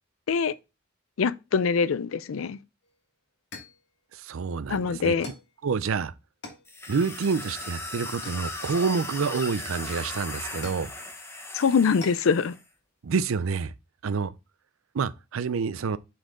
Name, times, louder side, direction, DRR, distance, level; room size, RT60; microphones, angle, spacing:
voice 1, 1.2-2.6 4.7-5.3 11.5-12.5, left 5 dB, 85° left, 0.4 m, -24 dB
sound 1, 2.8-3.0 3.5-3.9 5.2-5.6 6.4-6.7 8.2-8.9 9.9-10.9 12.0-12.3, left 3 dB, 60° left, 1.7 m, -44 dB
voice 2, 4.1-5.1 5.6-6.1 6.9-10.9 13.0-13.7 14.0-14.3 14.9-16.0, right 5 dB, 85° right, 0.5 m, -28 dB
sound 2, 6.7-12.6, left 2 dB, 15° left, 0.9 m, -37 dB
7.7 x 4.3 x 3.7 m
head